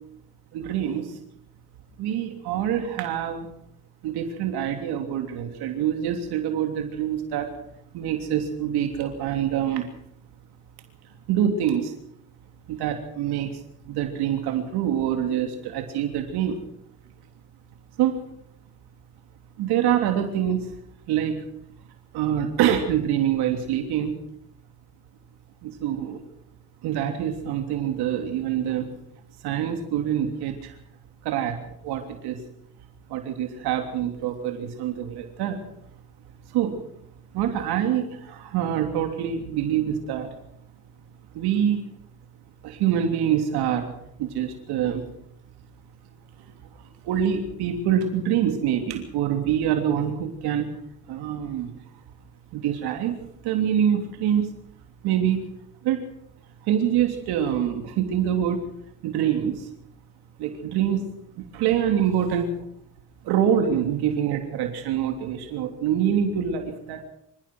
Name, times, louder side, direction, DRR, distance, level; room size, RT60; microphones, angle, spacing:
voice 1, 0.5-1.2 2.0-3.5 4.0-7.5 7.9-9.9 11.3-11.9 12.7-13.6 13.9-16.6 18.0-18.2 19.6-20.7 21.1-21.4 22.1-24.1 25.6-26.2 26.8-28.9 29.4-30.7 31.2-31.6 31.8-32.4 33.1-35.6 36.5-36.7 37.3-40.3 41.3-41.8 42.6-43.9 44.2-45.0 47.0-50.7 51.1-51.7 52.5-53.1 53.4-54.5 55.0-55.5 55.8-56.0 56.6-58.6 59.0-59.7 60.4-61.1 61.5-62.5 63.2-67.0, right 9 dB, 75° right, 4 dB, 3.3 m, -25 dB
27.0 x 15.5 x 6.3 m, 0.72 s
supercardioid pair, 95°, 39 cm